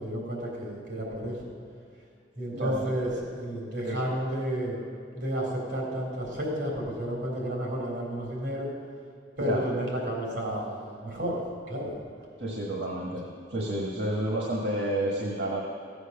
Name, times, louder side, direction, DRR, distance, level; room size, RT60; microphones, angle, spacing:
voice 1, 0.0-1.5 2.4-4.8 5.1-8.7 9.4-11.4 11.7-12.0, equal, 85° right, -2 dB, 3.8 m, -31 dB
voice 2, 2.5-2.8 3.8-4.1 9.4-9.6 12.4-13.2 13.5-15.6, right 1 dB, 70° right, -2 dB, 1.6 m, -30 dB
15.0 x 8.0 x 6.7 m, 2.4 s
head